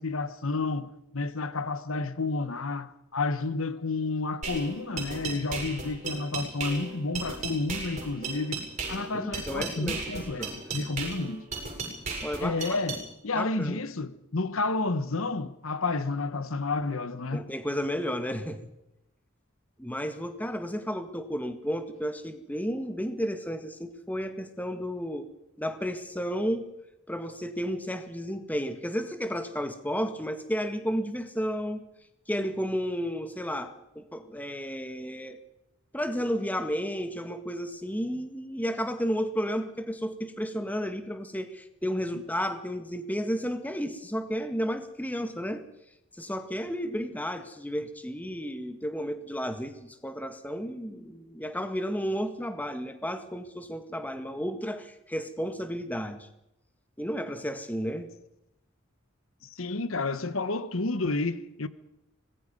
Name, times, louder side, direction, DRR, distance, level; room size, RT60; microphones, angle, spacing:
voice 1, 0.0-11.4 12.4-17.5 59.5-61.7, left 3 dB, 80° left, 1.2 m, -31 dB
sound 1, 4.4-13.0, right 4 dB, 35° right, 7.6 m, -35 dB
voice 2, 9.1-10.5 12.2-12.8 13.3-13.8 17.3-18.7 19.8-25.3 25.6-26.7 27.1-31.8 32.3-35.4 35.9-45.6 46.2-56.3 57.0-58.1, equal, 10° left, 1.8 m, -32 dB
25.5 x 20.5 x 5.4 m
head